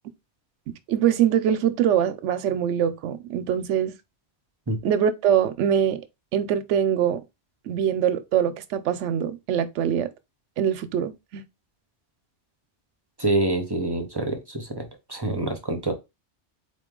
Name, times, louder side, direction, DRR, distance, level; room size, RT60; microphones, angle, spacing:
voice 1, 0.9-3.9 4.8-6.0 6.3-7.2 7.7-10.1 10.6-11.4, right 9 dB, 85° right, 0.9 m, -23 dB
voice 2, 13.2-14.8 15.1-15.9, right 2 dB, 25° right, 0.6 m, -26 dB
3.9 x 3.0 x 3.6 m
omnidirectional pair, 1.2 m